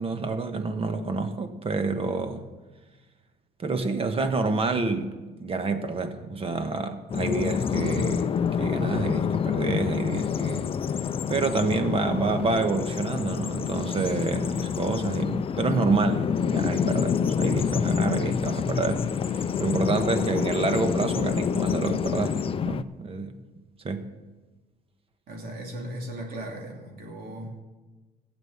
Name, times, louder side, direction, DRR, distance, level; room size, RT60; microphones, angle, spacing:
voice 1, 0.0-2.4 3.6-8.3 8.6-10.7 11.3-23.4 23.8-24.1, right 3 dB, 35° right, 9 dB, 1.3 m, -28 dB
Bird vocalization bird call bird song, 7.1-22.8, left 7 dB, 35° left, 0.5 m, -27 dB
voice 2, 25.3-27.6, right 1 dB, 60° right, 0 dB, 3.0 m, -37 dB
15.5 x 8.3 x 7.3 m, 1.2 s
cardioid pair, 110°, 17 cm